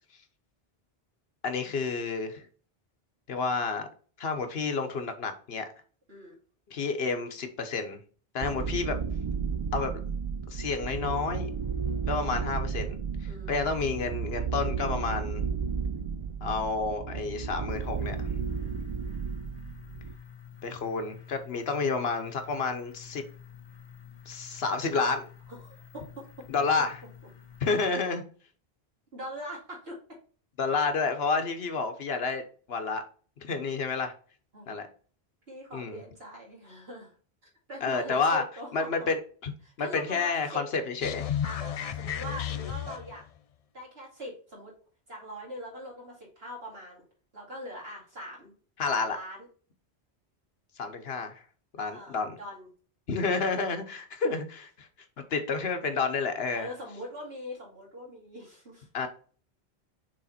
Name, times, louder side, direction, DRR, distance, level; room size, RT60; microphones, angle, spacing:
voice 1, 1.4-2.5 3.3-3.9 4.2-5.7 6.7-8.0 8.3-9.0 9.7-10.0 10.5-11.5 12.1-13.0 13.5-15.4 16.4-18.2 20.6-23.2 24.3-25.3 26.5-27.0 27.6-28.2 30.6-32.4 32.7-33.0 33.4-34.1 34.7-34.9 35.7-36.0 37.8-38.4 38.7-39.5 39.8-41.3 48.8-49.2 50.8-51.4 51.8-52.4 53.1-54.9 55.3-56.7 58.9-59.1, left 4 dB, 70° left, 7 dB, 1.1 m, -30 dB
sound 1, 8.4-20.1, right 6 dB, 50° right, 0.3 m, -33 dB
voice 2, 13.3-13.6 25.5-26.4 29.1-30.2 34.5-34.8 35.5-37.2 37.7-39.1 39.6-40.7 41.4-43.2 43.7-44.7 45.1-47.0 47.3-48.5 48.9-49.5 51.9-52.7 53.3-53.6 56.5-58.9, equal, 70° right, -3 dB, 2.7 m, -42 dB
sound 2, 17.7-27.9, left 8 dB, 30° left, 0.7 m, -49 dB
sound 3, 41.0-43.3, left 9 dB, 55° left, 0.4 m, -33 dB
6.5 x 3.5 x 4.2 m, 0.42 s
omnidirectional pair, 1.1 m